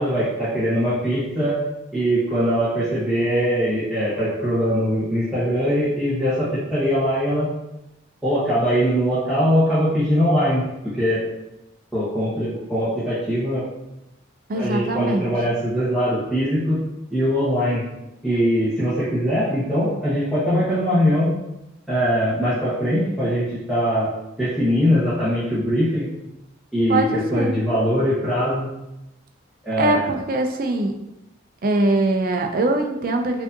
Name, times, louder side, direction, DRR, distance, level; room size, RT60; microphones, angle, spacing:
voice 1, 0.0-1.6 1.9-7.5 8.2-10.6 10.9-11.2 11.9-13.6 14.5-16.8 17.1-17.8 18.2-21.3 21.9-24.1 24.4-26.1 26.7-28.7 29.6-30.1, equal, ahead, -14 dB, 1.0 m, -21 dB
voice 2, 14.5-15.3 26.9-27.5 29.8-31.0 31.6-33.4, right 2 dB, 45° right, 4 dB, 0.4 m, -22 dB
4.6 x 2.6 x 2.6 m, 0.92 s
head